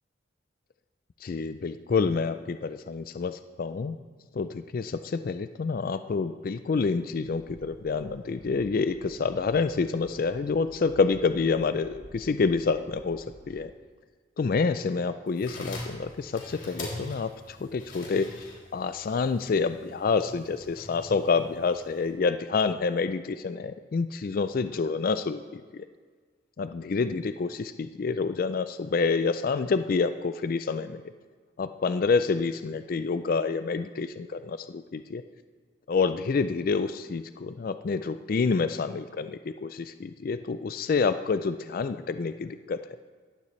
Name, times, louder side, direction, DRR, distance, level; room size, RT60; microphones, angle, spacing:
voice 1, 1.2-4.0 4.3-13.7 14.4-18.3 18.7-25.8 26.6-31.0 31.6-35.2 35.9-42.8, left 4 dB, 45° left, 11 dB, 0.3 m, -28 dB
sound 1, 7.2-13.7, right 1 dB, 45° right, 1.4 m, -51 dB
sound 2, 15.3-22.1, left 1 dB, 80° left, 3.1 m, -43 dB
15.0 x 12.0 x 3.2 m, 1.5 s
head